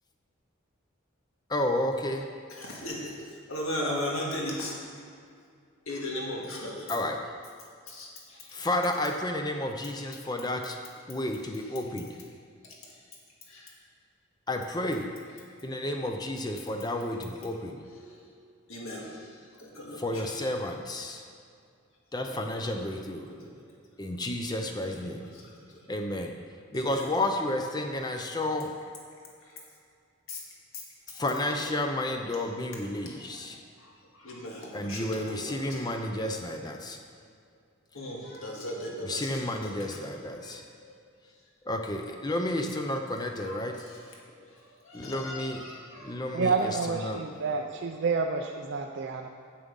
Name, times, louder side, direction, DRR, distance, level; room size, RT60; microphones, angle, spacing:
voice 1, 1.5-2.3 6.9-7.2 8.5-10.8 11.1-12.1 14.5-15.1 15.6-17.8 20.0-21.2 22.1-23.3 24.0-25.3 25.9-26.3 26.7-28.7 31.1-33.6 34.7-37.0 39.0-40.6 41.7-43.8 44.9-45.6 46.0-47.2, left 1 dB, 20° left, 4 dB, 0.5 m, -31 dB
voice 2, 2.6-3.1 3.5-4.7 5.9-6.9 7.9-8.1 13.5-13.6 18.0-18.1 18.7-19.1 19.6-20.0 22.7-23.2 26.7-27.0 30.3-30.4 33.1-33.2 34.2-35.9 37.9-40.1 40.4-40.9 43.5-43.6 44.9-46.2, left 1 dB, 85° left, -2 dB, 1.9 m, -37 dB
voice 3, 46.3-49.3, right 4 dB, 60° right, 3 dB, 0.4 m, -29 dB
7.5 x 7.3 x 5.3 m, 2.3 s
head